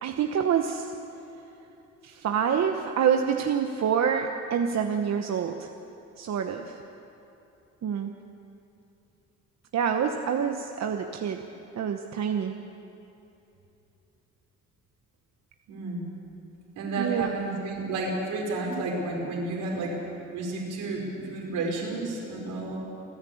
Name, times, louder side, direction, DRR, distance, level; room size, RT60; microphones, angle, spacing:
voice 1, 0.0-0.9 2.0-5.7 6.2-6.8 7.8-8.1 9.7-11.5 11.8-12.6 17.0-17.3, right 7 dB, 60° right, 5 dB, 1.1 m, -27 dB
voice 2, 15.7-16.1 16.7-20.0 20.3-22.8, right 2 dB, 90° right, -2 dB, 5.0 m, -31 dB
29.5 x 10.5 x 8.6 m, 2.8 s
cardioid pair, 90°, 30 cm